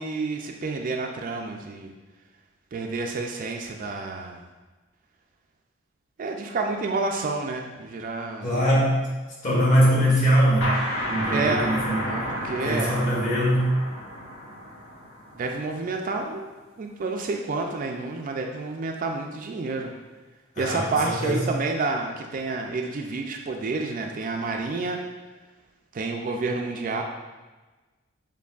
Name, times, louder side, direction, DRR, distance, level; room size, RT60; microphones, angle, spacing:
voice 1, 0.0-1.9 2.7-4.4 6.2-8.5 11.3-11.7 12.0-13.0 15.3-16.5 16.8-19.9 20.6-25.0 25.9-27.0, right 3 dB, 40° right, 2 dB, 0.3 m, -29 dB
voice 2, 8.4-9.1 9.4-10.8 11.1-12.0 12.6-13.7 20.5-21.4, equal, 40° left, -6 dB, 1.2 m, -22 dB
sound 1, 10.6-16.0, equal, 80° left, 1.1 m, -31 dB
6.8 x 2.6 x 2.3 m, 1.2 s
head